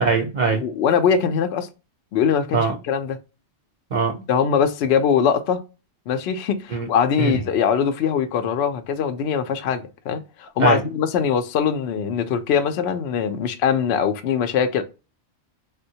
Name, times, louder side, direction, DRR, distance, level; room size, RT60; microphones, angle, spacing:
voice 1, 0.0-0.6 2.5-2.8 3.9-4.2 6.7-6.9 7.2-7.4 10.6-10.8, right 4 dB, 45° right, 0.6 m, -21 dB
voice 2, 0.6-1.7 2.1-3.2 4.3-5.6 6.1-14.8, left 7 dB, 65° left, 0.8 m, -22 dB
3.6 x 2.1 x 2.7 m
omnidirectional pair, 1.3 m